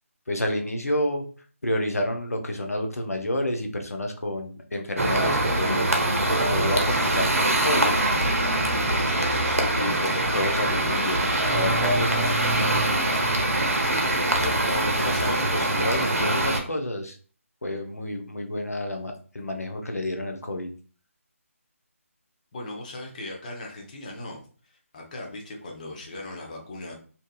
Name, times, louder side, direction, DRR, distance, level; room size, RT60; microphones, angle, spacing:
voice 1, 0.3-1.3 1.6-7.9 9.8-12.9 14.7-17.2 17.6-20.7, left 1 dB, 85° left, 4 dB, 0.5 m, -30 dB
sound 1, 5.0-16.6, right 1 dB, 75° right, 0.7 m, -23 dB
voice 2, 9.0-9.7 14.4-14.7 15.0-15.4 22.5-24.4 24.9-26.9, left 1 dB, 30° left, 0 dB, 0.6 m, -37 dB
2.6 x 2.4 x 2.2 m, 0.41 s
figure-of-eight pair, 150°, 8 cm